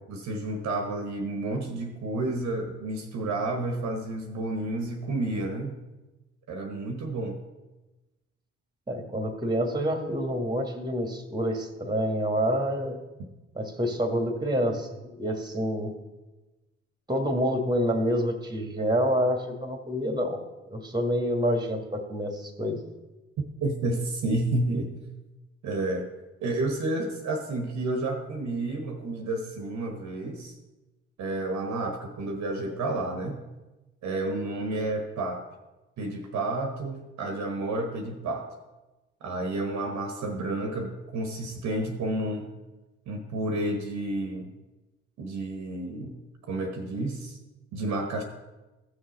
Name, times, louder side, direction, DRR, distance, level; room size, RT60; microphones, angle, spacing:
voice 1, 0.1-5.8 6.5-7.4 23.6-24.9 25.6-26.1 26.4-30.6 31.2-33.4 34.0-35.5 36.0-38.5 39.2-42.5 43.1-44.5 45.2-46.2 46.4-47.4 47.7-48.2, right 2 dB, 50° right, 4 dB, 1.2 m, -30 dB
voice 2, 8.9-13.0 13.6-15.9 17.1-20.4 20.7-22.8, equal, 10° right, 6 dB, 1.7 m, -27 dB
15.0 x 6.3 x 4.1 m, 1.1 s
figure-of-eight pair, 45°, 36 cm